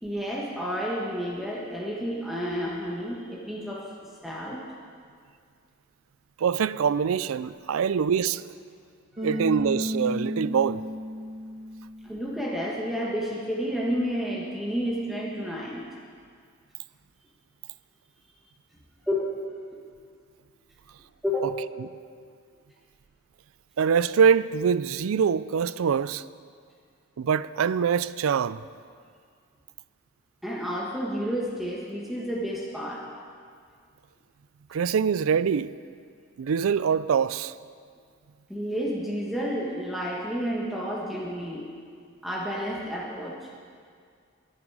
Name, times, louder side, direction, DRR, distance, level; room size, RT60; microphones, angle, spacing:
voice 1, 0.0-3.9 4.2-4.6 9.3-9.4 12.0-15.8 19.0-19.2 21.2-21.5 30.4-33.1 38.5-41.7 42.2-43.4, equal, ahead, 1.3 m, -30 dB
voice 2, 6.4-8.4 9.2-10.8 21.8-21.9 23.8-26.2 27.2-28.6 34.7-35.8 36.4-37.5, right 7 dB, 85° right, 0.4 m, -24 dB
Bass guitar, 9.2-12.3, equal, 25° right, 2.6 m, -33 dB
21.5 x 9.0 x 4.8 m
head